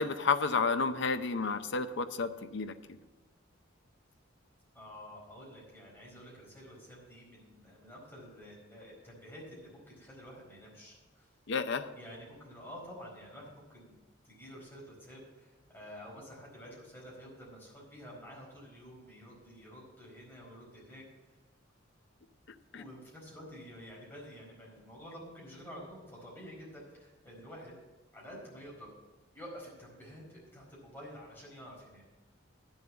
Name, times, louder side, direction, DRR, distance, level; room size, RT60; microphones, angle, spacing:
voice 1, 0.0-2.7 11.5-11.9 22.7-22.8, left 4 dB, 60° left, 10 dB, 0.6 m, -31 dB
voice 2, 4.7-11.3 11.9-14.0 14.2-21.0 22.7-27.7 28.1-28.9 29.3-32.0, equal, 10° left, -4 dB, 4.6 m, -49 dB
10.5 x 7.3 x 7.1 m, 1.2 s
head